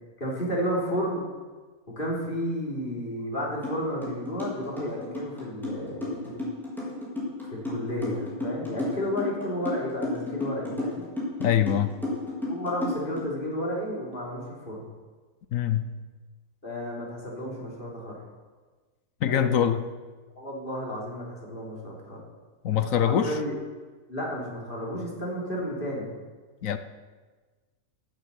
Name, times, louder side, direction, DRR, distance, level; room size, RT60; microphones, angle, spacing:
voice 1, 0.2-1.3 1.9-6.3 7.4-11.1 12.5-14.8 16.6-18.2 19.2-19.5 20.4-22.2 22.9-23.6 24.1-26.1, equal, 35° left, -4 dB, 3.6 m, -32 dB
sound 1, 3.6-3.8 4.0-13.2, left 1 dB, ahead, 4.5 m, -32 dB
voice 2, 11.4-11.9 15.5-15.9 19.2-19.8 22.6-23.3 26.6-26.8, left 9 dB, 65° left, 10 dB, 1.1 m, -24 dB
12.0 x 8.9 x 8.4 m, 1.4 s
omnidirectional pair, 1.6 m